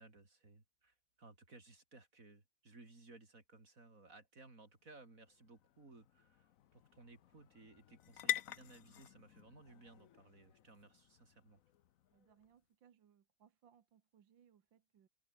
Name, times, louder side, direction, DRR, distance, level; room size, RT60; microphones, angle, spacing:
voice 1, 0.0-11.6, right 3 dB, 40° right, 4.8 m, -60 dB
sound 1, 4.7-12.5, left 11 dB, 60° left, 0.9 m, -47 dB
voice 2, 12.1-15.1, right 8 dB, 70° right, 2.1 m, -69 dB
open air
omnidirectional pair, 2.1 m